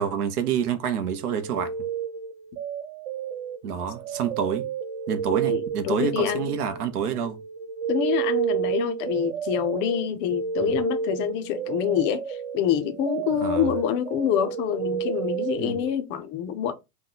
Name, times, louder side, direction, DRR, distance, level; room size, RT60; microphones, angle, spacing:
voice 1, 0.0-1.7 3.6-4.7 5.1-7.4 10.6-10.8 13.4-13.7 15.6-15.8, right 8 dB, 75° right, 0.7 m, -28 dB
sound 1, 1.1-7.1 7.3-15.9, right 8 dB, 30° right, 0.5 m, -31 dB
voice 2, 5.3-6.5 7.9-16.7, left 9 dB, 25° left, 0.4 m, -26 dB
2.9 x 2.1 x 3.8 m
hypercardioid pair, 110°, 45 cm